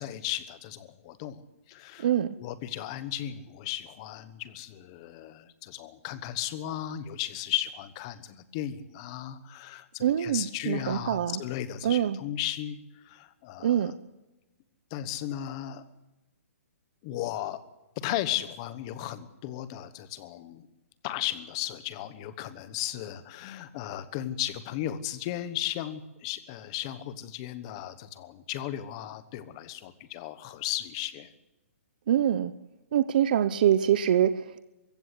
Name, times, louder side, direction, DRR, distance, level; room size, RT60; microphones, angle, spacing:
voice 1, 0.0-2.1 2.4-13.9 14.9-15.8 17.0-17.6 18.0-20.7 21.0-31.3, left 12 dB, 20° left, 14 dB, 1.1 m, -35 dB
voice 2, 2.0-2.3 10.0-11.4 11.8-12.2 13.6-13.9 32.1-32.5 32.9-34.6, right 10 dB, 35° right, 13 dB, 0.7 m, -24 dB
23.5 x 15.5 x 8.4 m, 1.0 s
hypercardioid pair, 180°, 8 cm